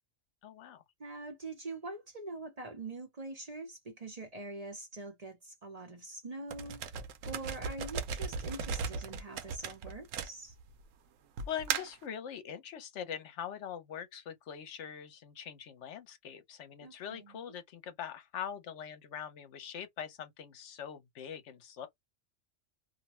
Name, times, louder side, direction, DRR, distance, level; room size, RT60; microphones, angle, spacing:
voice 1, 0.4-0.8 11.5-21.9, left 9 dB, 70° left, 0.9 m, -43 dB
voice 2, 1.0-10.5 16.8-17.5, right 2 dB, 35° right, 0.7 m, -44 dB
sound 1, 6.5-10.8 11.4-12.0, right 6 dB, 90° right, 1.0 m, -37 dB
2.5 x 2.1 x 2.9 m
omnidirectional pair, 1.3 m